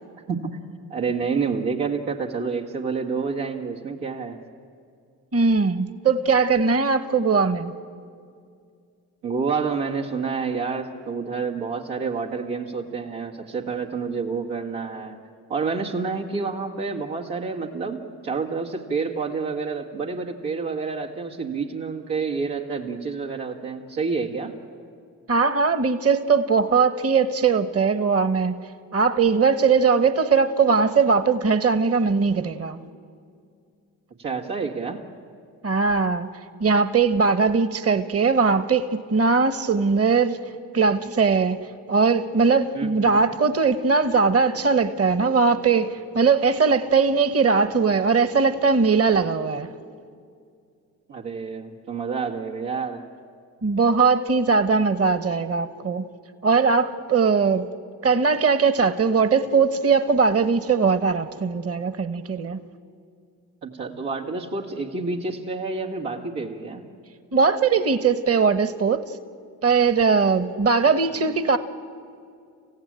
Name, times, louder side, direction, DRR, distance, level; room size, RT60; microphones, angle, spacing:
voice 1, 0.9-4.4 9.2-15.2 15.5-24.5 34.2-35.0 42.7-43.2 51.1-53.1 63.6-66.9 71.1-71.3, right 4 dB, 85° right, 2.0 m, -28 dB
voice 2, 5.3-7.7 25.3-28.6 28.9-32.8 35.6-36.3 36.6-40.4 40.7-49.7 53.6-56.1 56.4-57.7 58.0-62.6 67.3-69.1 69.6-71.6, right 5 dB, 35° right, 1.1 m, -20 dB
27.5 x 15.5 x 8.8 m
hypercardioid pair, 40°, 43 cm